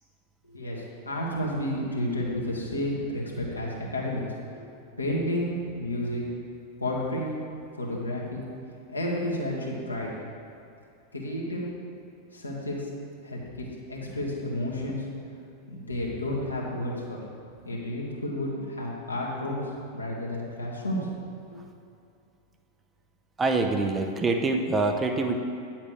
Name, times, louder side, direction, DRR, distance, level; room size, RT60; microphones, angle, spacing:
voice 1, 0.4-4.2 4.6-4.7 5.0-6.2 6.8-7.3 7.7-8.4 8.9-10.1 11.1-11.7 12.3-12.9 13.2-15.0 15.7-17.2 17.6-19.6 19.9-21.1 21.5-21.6, left 1 dB, 85° left, -4 dB, 1.5 m, -31 dB
voice 2, 23.4-25.4, right 3 dB, 15° right, 4 dB, 0.6 m, -25 dB
9.4 x 7.3 x 3.2 m, 2.6 s
figure-of-eight pair, 90°, 0 cm